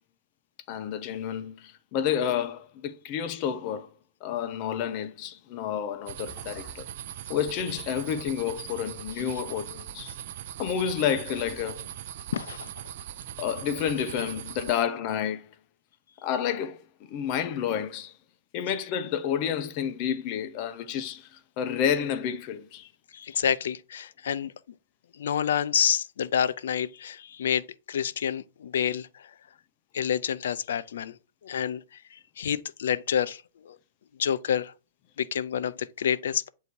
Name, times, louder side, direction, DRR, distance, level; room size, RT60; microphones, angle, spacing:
voice 1, 0.7-3.9 4.2-6.9 7.3-10.1 10.6-11.8 13.4-15.5 16.2-18.1 18.5-22.9, left 8 dB, 40° left, 0.6 m, -30 dB
sound 1, 5.9-7.1 7.7-9.4 10.0-11.0 11.3-12.4, left 3 dB, 5° left, 4.0 m, -53 dB
sound 2, 6.1-14.8, right 11 dB, 55° right, 0.4 m, -40 dB
voice 2, 12.3-12.7 23.1-24.5 25.1-29.3 29.9-31.2 31.4-33.8 34.2-34.7 35.2-36.5, left 8 dB, 85° left, 0.4 m, -28 dB
8.1 x 2.7 x 4.5 m
hypercardioid pair, 150°, 0 cm